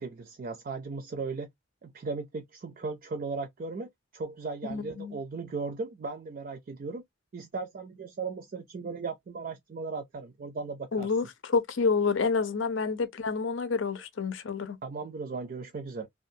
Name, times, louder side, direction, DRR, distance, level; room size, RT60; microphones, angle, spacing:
voice 1, 0.0-1.5 1.8-7.0 7.3-11.1 14.8-16.1, right 4 dB, 45° right, 0.4 m, -37 dB
voice 2, 4.6-5.2 10.9-14.8, left 4 dB, 65° left, 0.6 m, -28 dB
2.6 x 2.3 x 2.6 m
head